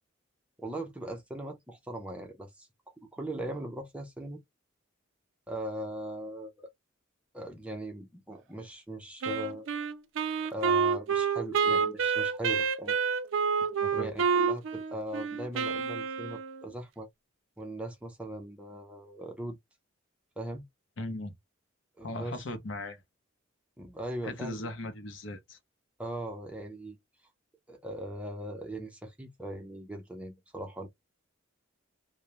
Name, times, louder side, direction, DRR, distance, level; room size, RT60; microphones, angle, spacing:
voice 1, 0.6-2.7 3.1-4.4 5.5-6.7 7.3-9.7 10.5-13.0 13.9-17.1 17.6-19.6 20.4-20.6 22.0-22.4 23.8-24.7 26.0-27.0 27.7-30.9, right 1 dB, 5° right, 0.5 m, -39 dB
Wind instrument woodwind instrument, 9.2-16.7, right 6 dB, 70° right, 0.4 m, -28 dB
voice 2, 21.0-21.3 22.0-23.0 24.2-25.6, left 2 dB, 65° left, 0.6 m, -38 dB
2.3 x 2.0 x 2.8 m
head